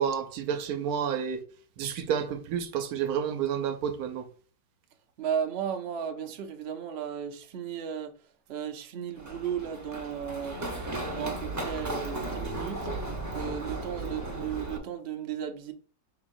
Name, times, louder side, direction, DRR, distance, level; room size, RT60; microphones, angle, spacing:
voice 1, 0.0-1.4 1.8-4.3, right 8 dB, 70° right, 1.0 m, -30 dB
voice 2, 5.2-10.7 11.0-12.9 13.3-15.7, right 8 dB, 85° right, 0.5 m, -35 dB
Run, 9.2-14.8, right 2 dB, 20° right, 0.5 m, -35 dB
4.9 x 3.9 x 2.5 m
omnidirectional pair, 1.9 m